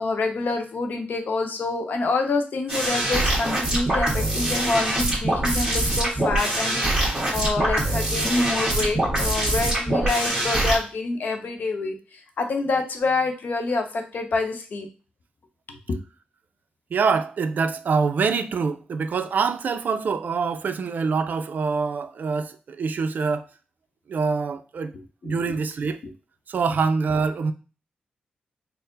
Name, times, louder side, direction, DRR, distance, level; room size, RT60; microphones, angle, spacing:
voice 1, 0.0-11.9 12.4-14.9 15.9-16.0 25.2-25.3, left 3 dB, 60° left, 0.7 m, -27 dB
sound 1, 2.7-10.8, right 1 dB, 20° right, 1.5 m, -23 dB
voice 2, 16.9-23.5 24.1-24.9 25.2-26.0 26.5-27.5, right 5 dB, 60° right, 0.4 m, -25 dB
4.3 x 2.0 x 3.8 m
wide cardioid pair, 115°, 3 cm